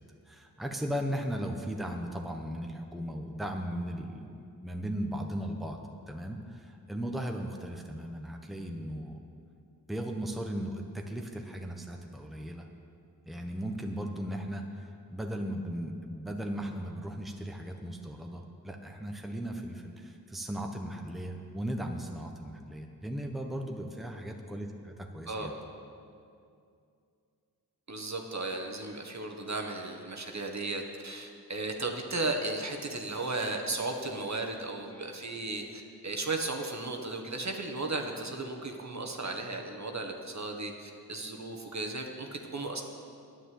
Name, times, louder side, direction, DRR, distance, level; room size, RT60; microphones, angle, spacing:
voice 1, 0.2-9.2 9.9-12.7 13.3-25.6, equal, ahead, 2 dB, 1.1 m, -37 dB
voice 2, 27.9-42.8, right 2 dB, 45° right, 2 dB, 1.5 m, -35 dB
9.9 x 9.2 x 7.7 m, 2.4 s
cardioid pair, 45°, 39 cm